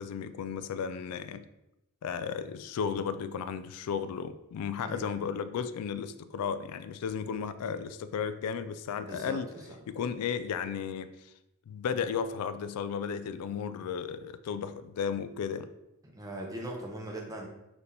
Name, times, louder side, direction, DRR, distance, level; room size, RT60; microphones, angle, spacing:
voice 1, 0.0-1.5 2.0-9.5 9.9-11.3 11.7-15.7, left 7 dB, 80° left, 12 dB, 0.3 m, -34 dB
voice 2, 4.8-5.2 9.0-9.8 16.1-17.5, right 1 dB, 15° right, 0 dB, 0.6 m, -40 dB
4.1 x 2.8 x 3.3 m, 0.89 s
head